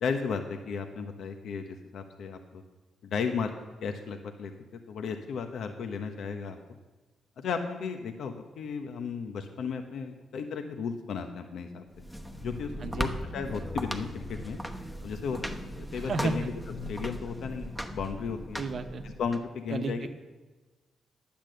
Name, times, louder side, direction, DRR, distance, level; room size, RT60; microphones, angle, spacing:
voice 1, 0.0-2.6 3.0-3.5 3.8-4.5 4.9-6.6 7.4-11.8 12.4-14.6 15.0-18.6 19.0-20.1, left 5 dB, 75° left, 6 dB, 1.0 m, -34 dB
sound 1, 11.9-19.4, equal, ahead, 1.0 m, -38 dB
voice 2, 15.9-16.3 18.6-19.0 19.7-20.1, right 4 dB, 50° right, 7 dB, 1.0 m, -32 dB
10.5 x 8.8 x 7.8 m, 1.2 s
cardioid pair, 110°, 0 cm